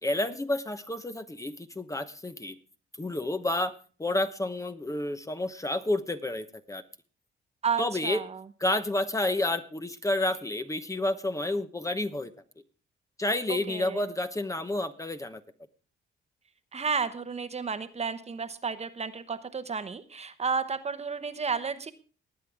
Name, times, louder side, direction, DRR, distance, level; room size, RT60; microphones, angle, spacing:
voice 1, 0.0-2.5 3.0-3.7 4.0-6.8 7.8-8.2 8.6-12.3 13.2-15.4, left 1 dB, 15° left, 9 dB, 1.0 m, -30 dB
voice 2, 7.6-8.5 13.5-14.1 16.7-21.9, right 5 dB, 35° right, 10 dB, 1.0 m, -32 dB
20.0 x 8.6 x 3.5 m, 0.36 s
cardioid pair, 90°, 20 cm